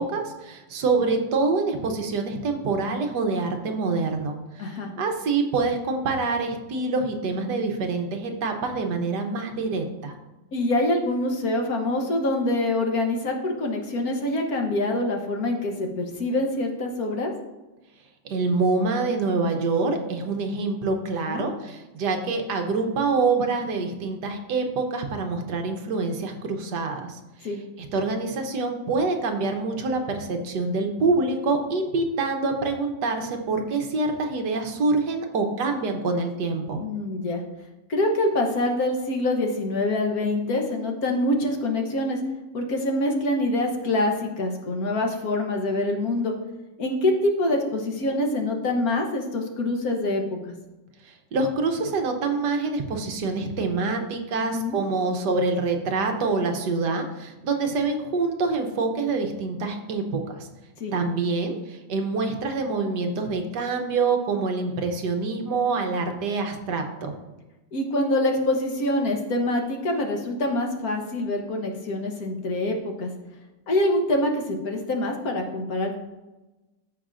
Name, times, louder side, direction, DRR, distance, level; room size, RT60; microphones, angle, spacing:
voice 1, 0.0-10.1 18.2-27.2 27.9-36.8 51.0-60.5 60.9-67.1, right 3 dB, 70° right, 4 dB, 1.4 m, -26 dB
voice 2, 4.6-4.9 10.5-17.3 21.3-21.4 27.4-27.6 36.8-37.4 37.9-42.2 42.5-46.3 46.8-50.5 54.4-54.8 60.8-60.9 67.7-73.1 73.7-76.0, left 1 dB, 60° left, 2 dB, 1.4 m, -25 dB
14.5 x 5.6 x 2.5 m, 1.1 s
omnidirectional pair, 2.0 m